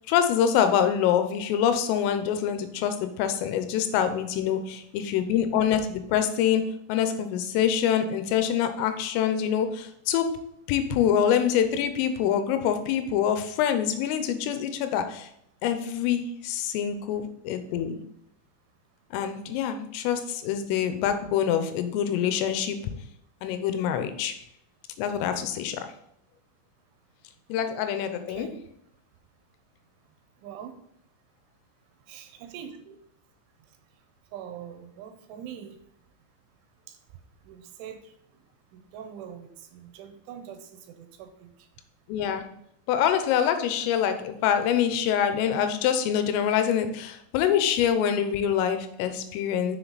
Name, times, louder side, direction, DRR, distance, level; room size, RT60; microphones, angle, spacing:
voice 1, 0.1-6.6 6.9-10.3 10.7-15.3 15.6-18.0 19.1-23.0 23.4-24.4 25.0-25.9 27.5-28.5 42.1-42.5 42.9-49.8, left 9 dB, 90° left, 9 dB, 3.5 m, -25 dB
voice 2, 28.3-28.6 30.4-30.7 32.1-33.0 34.3-35.8 36.9-37.0 37.4-38.1 38.7-41.7, right 8 dB, 80° right, 7 dB, 3.2 m, -43 dB
8.0 x 6.7 x 4.0 m, 0.76 s
omnidirectional pair, 5.7 m